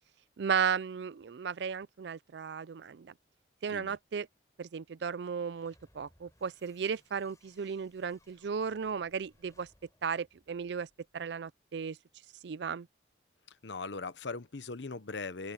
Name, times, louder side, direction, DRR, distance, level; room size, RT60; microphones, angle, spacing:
voice 1, 0.4-3.1 3.6-4.3 4.6-9.7 10.0-10.9 11.1-12.0 12.4-12.9, right 6 dB, 65° right, 0.4 m, -35 dB
sound 1, 5.0-11.3, left 1 dB, 20° left, 4.6 m, -68 dB
voice 2, 13.5-15.5, left 4 dB, 70° left, 1.0 m, -40 dB
open air
head